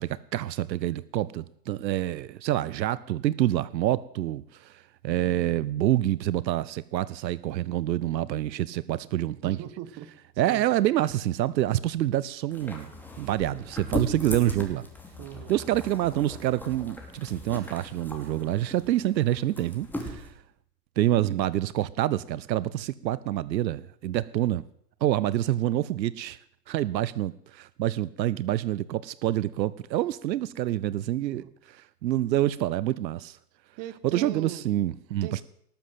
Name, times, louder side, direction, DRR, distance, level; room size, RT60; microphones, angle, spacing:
voice 1, 0.0-9.6 10.4-12.9 13.2-14.9 15.5-20.3 21.0-24.6 25.0-26.4 26.7-33.4 34.0-35.4, right 13 dB, 90° right, 0.7 m, -27 dB
voice 2, 9.4-10.1 10.5-10.6 15.2-15.5 26.8-27.0 31.4-31.5 33.8-34.6 35.2-35.4, right 12 dB, 40° right, 1.5 m, -39 dB
sound 1, 12.5-20.3, left 1 dB, 5° left, 2.9 m, -38 dB
19.0 x 7.4 x 7.6 m
hypercardioid pair, 120°, 50 cm